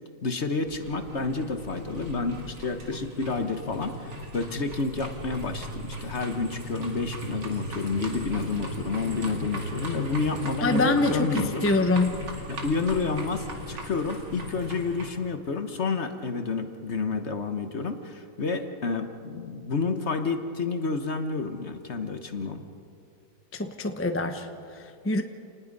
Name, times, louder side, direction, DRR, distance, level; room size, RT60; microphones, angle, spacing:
voice 1, 0.2-11.7 12.5-22.6, left 4 dB, 45° left, 7 dB, 1.3 m, -30 dB
sound 1, 0.7-15.1, equal, 85° right, 3.0 m, -37 dB
voice 2, 10.6-12.2 23.5-25.2, left 2 dB, 10° left, 6 dB, 0.7 m, -25 dB
28.5 x 19.5 x 5.4 m, 2.5 s
omnidirectional pair, 1.8 m